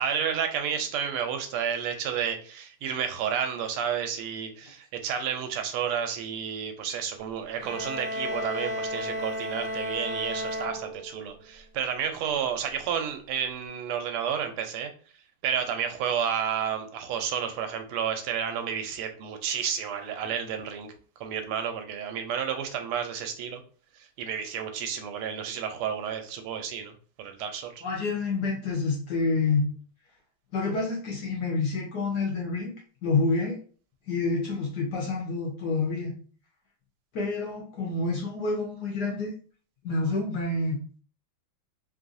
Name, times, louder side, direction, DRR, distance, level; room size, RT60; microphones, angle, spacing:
voice 1, 0.0-14.9 15.4-20.9 21.2-23.6 24.2-27.7, right 8 dB, 85° right, 6 dB, 1.5 m, -31 dB
sound 1, 7.6-11.4, equal, 50° right, 1.2 m, -33 dB
voice 2, 27.8-29.7 30.5-32.7 33.0-33.6 34.1-36.1 37.1-39.3 39.8-40.8, left 3 dB, 65° left, -1 dB, 1.1 m, -28 dB
3.5 x 2.6 x 2.5 m, 0.41 s
omnidirectional pair, 2.4 m